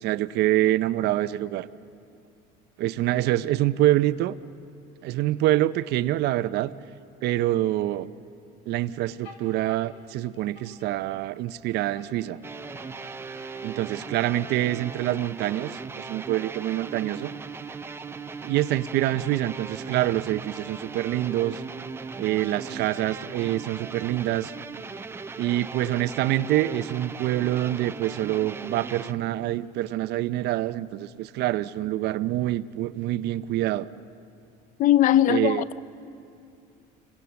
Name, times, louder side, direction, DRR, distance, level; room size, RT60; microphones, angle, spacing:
voice 1, 0.0-1.7 2.8-4.4 5.0-6.7 7.2-8.1 8.7-12.4 13.6-17.3 18.4-21.6 22.2-24.5 25.4-33.9 35.3-35.6, right 14 dB, 60° right, 0.6 m, -26 dB
sound 1, 9.2-11.6 11.9-14.8, left 3 dB, 75° left, 4.9 m, -50 dB
sound 2, 12.4-29.1, right 4 dB, 10° right, 0.5 m, -38 dB
voice 2, 34.8-35.8, left 11 dB, 45° left, 0.6 m, -20 dB
28.0 x 23.0 x 7.0 m
cardioid pair, 145°, 19 cm